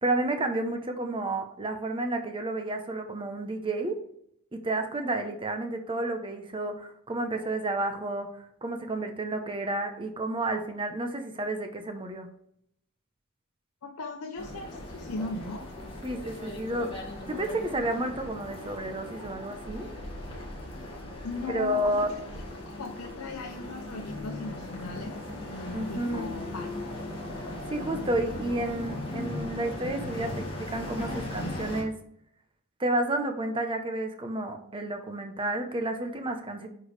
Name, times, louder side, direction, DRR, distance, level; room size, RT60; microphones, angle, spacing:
voice 1, 0.0-4.0 4.5-8.3 8.6-12.3 16.0-19.9 21.5-22.1 25.7-26.3 27.7-31.9 32.8-36.7, right 2 dB, 25° right, 5 dB, 0.9 m, -31 dB
voice 2, 13.8-15.7 21.2-22.2 22.8-25.2 25.5-26.7, left 3 dB, 75° left, 1 dB, 0.9 m, -38 dB
sound 1, 14.4-31.8, left 2 dB, 25° left, 2.0 m, -38 dB
9.8 x 4.7 x 3.3 m, 0.71 s
head